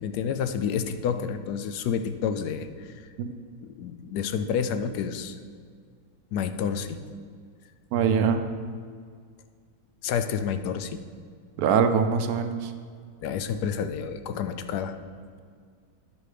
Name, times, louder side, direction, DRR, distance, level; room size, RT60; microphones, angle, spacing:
voice 1, 0.0-3.1 3.6-5.4 6.3-7.0 10.0-11.0 13.2-15.0, left 7 dB, 85° left, 9 dB, 1.2 m, -29 dB
voice 2, 7.9-8.4 11.6-12.7, right 6 dB, 70° right, 8 dB, 1.0 m, -23 dB
10.5 x 5.2 x 4.9 m, 2.1 s
omnidirectional pair, 1.7 m